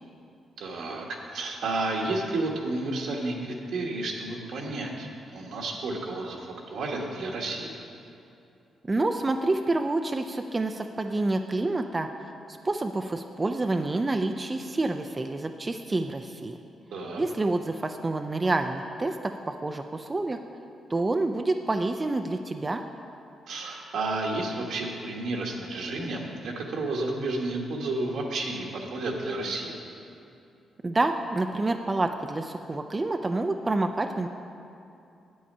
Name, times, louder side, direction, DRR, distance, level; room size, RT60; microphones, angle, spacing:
voice 1, 0.6-7.7 16.9-17.2 23.5-29.8, right 2 dB, 75° right, 0 dB, 1.4 m, -31 dB
voice 2, 8.9-12.1 12.5-16.6 17.2-20.4 20.9-22.8 30.8-34.3, right 2 dB, 30° right, 5 dB, 0.5 m, -28 dB
8.5 x 8.4 x 5.5 m, 2.7 s
supercardioid pair, 65°, 0 cm